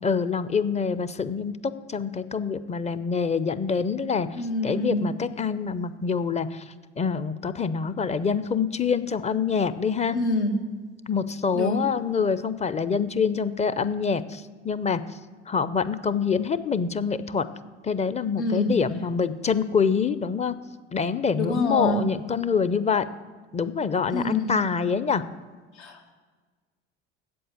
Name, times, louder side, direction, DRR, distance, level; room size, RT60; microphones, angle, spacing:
voice 1, 0.0-4.3 4.6-6.6 7.0-10.2 11.1-15.0 15.5-17.5 17.8-20.6 20.9-23.1 23.5-25.2, left 6 dB, 20° left, 14 dB, 0.5 m, -25 dB
voice 2, 4.3-5.0 10.1-10.5 11.5-11.9 18.4-18.7 21.3-22.0 24.1-24.6 25.7-26.1, left 2 dB, 80° left, 2 dB, 1.9 m, -27 dB
7.7 x 7.7 x 7.8 m, 1.4 s
hypercardioid pair, 70°, 34 cm